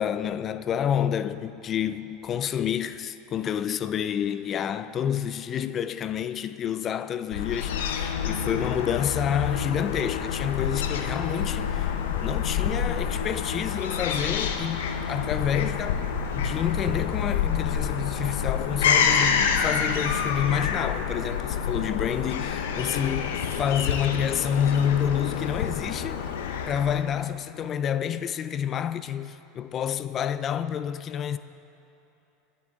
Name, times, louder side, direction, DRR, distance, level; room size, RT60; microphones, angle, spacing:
voice 1, 0.0-16.0 16.3-23.3 23.6-26.2 26.7-31.4, left 9 dB, 35° left, 0.4 m, -28 dB
Fowl / Gull seagull, 7.3-27.2, left 7 dB, 85° left, 0.8 m, -28 dB
20.5 x 8.5 x 3.6 m
supercardioid pair, 110°, 0 cm